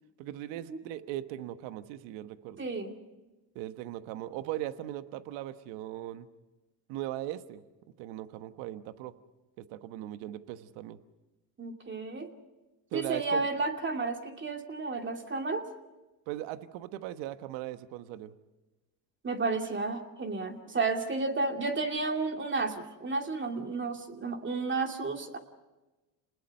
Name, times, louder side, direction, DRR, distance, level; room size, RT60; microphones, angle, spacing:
voice 1, 0.2-2.6 3.5-6.3 6.9-7.6 8.0-9.1 9.6-11.0 12.9-13.5 16.3-18.3, right 13 dB, 65° right, 11 dB, 1.3 m, -39 dB
voice 2, 2.6-2.9 11.6-12.3 12.9-15.6 19.2-25.4, right 3 dB, 25° right, 4 dB, 2.6 m, -32 dB
28.5 x 20.0 x 5.5 m, 1.1 s
supercardioid pair, 90°, 47 cm